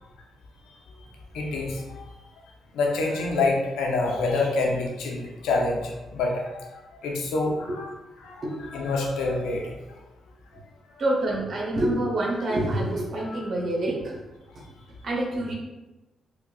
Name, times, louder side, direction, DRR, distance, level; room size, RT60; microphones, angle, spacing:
voice 1, 1.3-2.1 2.7-6.7 7.0-7.9 8.2-9.7 13.2-13.4, left 3 dB, 85° left, 0 dB, 0.6 m, -27 dB
voice 2, 11.0-14.1 15.0-15.5, right 1 dB, 60° right, -2 dB, 0.8 m, -26 dB
4.7 x 2.4 x 2.3 m, 1.0 s
supercardioid pair, 60°, 0 cm